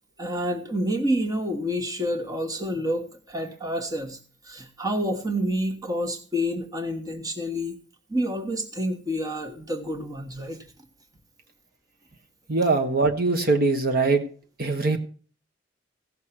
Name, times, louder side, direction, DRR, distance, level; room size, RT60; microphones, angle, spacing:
voice 1, 0.2-4.2 4.4-7.8 8.1-10.6, equal, 20° right, 5 dB, 1.4 m, -28 dB
voice 2, 12.5-14.2 14.6-15.0, right 3 dB, 55° right, 5 dB, 1.3 m, -22 dB
16.0 x 6.5 x 5.9 m, 0.41 s
head